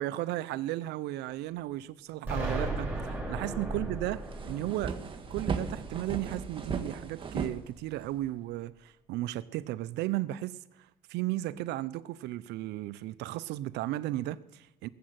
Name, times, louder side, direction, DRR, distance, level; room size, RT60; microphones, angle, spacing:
voice 1, 0.0-5.0 5.3-10.6 11.1-14.9, right 15 dB, 85° right, 0.6 m, -35 dB
Explosion, 2.2-7.1, right 2 dB, 10° right, 6.3 m, -37 dB
sound 1, 3.6-3.7 4.0-8.3, right 5 dB, 30° right, 1.5 m, -36 dB
19.0 x 7.6 x 7.9 m
cardioid pair, 110°, 17 cm